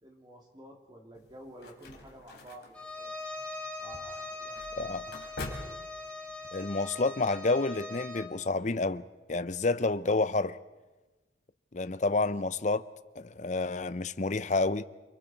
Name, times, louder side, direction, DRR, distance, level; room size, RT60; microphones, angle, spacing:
voice 1, 0.0-3.1 3.8-4.6, equal, 25° right, 3.2 m, -51 dB
sound 1, 1.1-6.5, left 2 dB, 65° left, 3.4 m, -46 dB
Bowed string instrument, 2.7-8.4, left 2 dB, 5° left, 1.8 m, -41 dB
voice 2, 4.7-5.1 6.5-10.6 11.7-12.8 13.2-14.8, left 3 dB, 40° left, 0.7 m, -29 dB
28.5 x 24.5 x 4.7 m
head